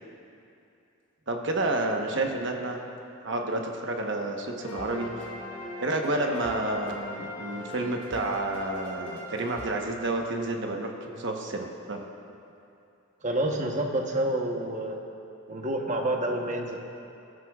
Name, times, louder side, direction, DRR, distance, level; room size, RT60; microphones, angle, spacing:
voice 1, 1.3-2.8 3.2-5.3 5.8-12.1, right 2 dB, 55° right, 2 dB, 1.1 m, -30 dB
sound 1, 4.6-10.5, left 1 dB, 35° left, 1.9 m, -40 dB
voice 2, 13.2-15.0 15.5-16.8, right 1 dB, 35° right, 1 dB, 1.0 m, -28 dB
20.5 x 12.5 x 2.4 m, 2.7 s
head